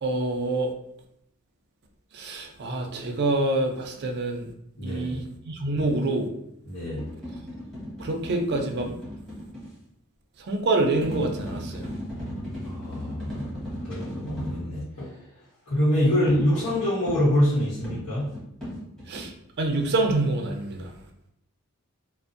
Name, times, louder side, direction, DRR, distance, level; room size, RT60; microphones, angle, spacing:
voice 1, 0.0-0.7 2.1-4.5 4.8-6.3 8.0-8.9 10.4-11.9 19.1-19.3 19.6-20.9, right 2 dB, 50° right, 3 dB, 0.4 m, -26 dB
voice 2, 4.8-5.2 6.7-7.0 12.6-13.4 13.8-15.1 15.7-18.3, equal, 90° left, -8 dB, 0.9 m, -25 dB
sound 1, 6.9-9.7 11.0-14.7 16.3-19.3, equal, ahead, 0.9 m, -36 dB
2.5 x 2.0 x 2.5 m, 0.75 s
head